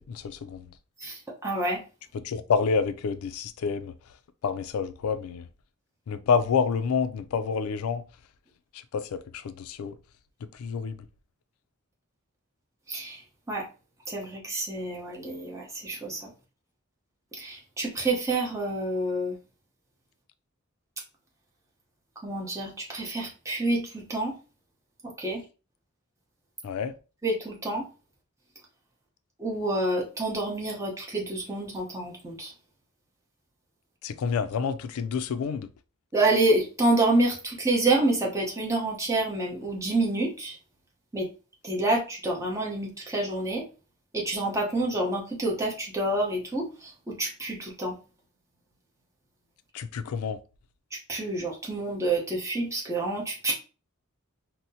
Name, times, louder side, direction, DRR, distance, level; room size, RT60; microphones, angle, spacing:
voice 1, 0.1-0.6 2.1-3.9 4.4-5.4 6.1-8.0 8.9-9.9 10.6-11.0 26.6-26.9 34.0-35.7 49.7-50.4, left 5 dB, 80° left, 0.3 m, -28 dB
voice 2, 1.4-1.8 12.9-13.2 13.5-13.6 14.1-16.2 17.4-19.3 22.2-24.3 25.2-25.4 27.2-27.8 29.4-32.5 36.1-40.5 41.1-41.2 41.7-43.6 44.1-46.7 47.2-47.9 51.1-53.5, right 2 dB, 15° right, 0.8 m, -27 dB
4.1 x 2.0 x 2.7 m
head